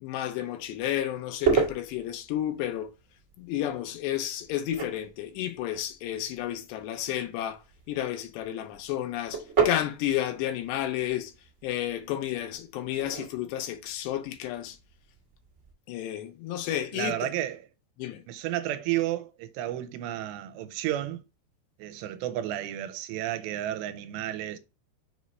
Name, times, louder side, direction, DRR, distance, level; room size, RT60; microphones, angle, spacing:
voice 1, 0.0-2.9 3.4-7.6 7.9-11.3 11.6-14.8 15.9-17.3 18.0-18.2, left 12 dB, 85° left, 3.0 m, -31 dB
sound 1, 0.6-15.7, right 5 dB, 55° right, 0.8 m, -35 dB
voice 2, 16.9-17.7 18.3-21.2 21.8-24.6, right 13 dB, 90° right, 2.8 m, -32 dB
7.0 x 3.1 x 5.4 m
omnidirectional pair, 5.0 m